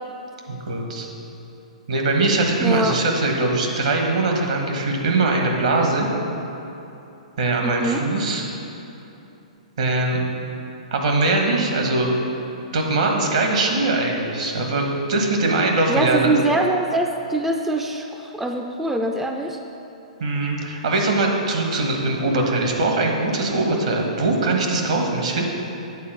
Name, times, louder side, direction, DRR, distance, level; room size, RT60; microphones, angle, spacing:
voice 1, 0.5-1.1 1.9-6.1 7.4-8.4 9.8-10.2 10.9-12.1 12.7-16.4 20.2-25.4, right 2 dB, 70° right, 1 dB, 1.4 m, -21 dB
voice 2, 2.6-3.0 7.6-8.0 15.9-19.6, right 2 dB, 5° right, 3 dB, 0.4 m, -23 dB
8.5 x 4.2 x 6.6 m, 2.9 s
hypercardioid pair, 120°, 4 cm